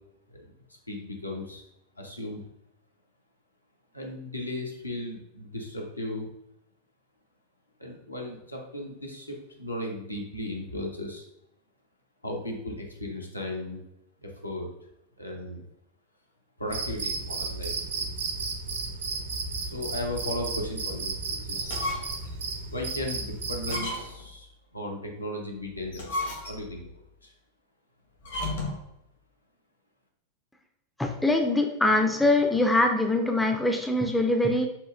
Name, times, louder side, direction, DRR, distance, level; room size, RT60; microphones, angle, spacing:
voice 1, 0.9-1.6 2.0-2.4 3.9-6.3 7.8-11.3 12.2-13.8 14.2-14.7 15.2-15.6 16.6-18.1 19.7-21.9 22.7-26.9 27.2-27.3, left 1 dB, 85° left, 0 dB, 0.7 m, -36 dB
Cricket, 16.7-23.9, right 4 dB, 65° right, 0.6 m, -33 dB
sound 1, 21.6-22.3 22.7-22.8 23.6-24.3 25.8-26.8 28.2-28.9, left 2 dB, 65° left, 1.0 m, -33 dB
voice 2, 31.0-34.7, left 2 dB, 5° left, 4 dB, 0.4 m, -23 dB
5.6 x 2.3 x 2.3 m, 0.83 s
figure-of-eight pair, 90°, 0 cm